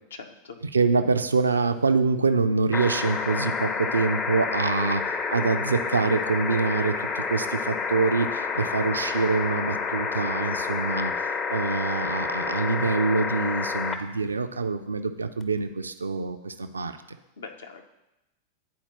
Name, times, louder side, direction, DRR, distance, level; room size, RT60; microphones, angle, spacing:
voice 1, 0.1-0.6 17.4-17.9, left 5 dB, 65° left, 6 dB, 0.6 m, -42 dB
voice 2, 0.7-16.9, right 4 dB, 75° right, 9 dB, 0.3 m, -25 dB
sound 1, 2.7-14.0 15.4-15.5, left 5 dB, 25° left, 0.5 m, -29 dB
10.0 x 4.2 x 2.9 m, 0.95 s
figure-of-eight pair, 90°, 0 cm